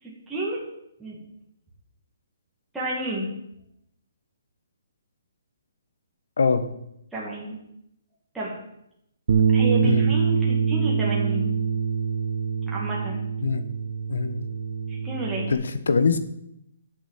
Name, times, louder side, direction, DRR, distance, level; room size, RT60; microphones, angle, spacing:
voice 1, 0.0-0.6 1.0-1.2 2.7-3.3 7.1-7.6 8.3-8.5 9.5-11.5 12.7-13.2 14.9-15.5, right 1 dB, 5° right, -7 dB, 2.2 m, -31 dB
Bass guitar, 9.3-15.5, right 6 dB, 50° right, 0.8 m, -24 dB
voice 2, 14.1-14.4 15.5-16.2, left 5 dB, 80° left, 11 dB, 1.2 m, -23 dB
8.4 x 6.9 x 7.6 m, 0.80 s
hypercardioid pair, 165°, 0 cm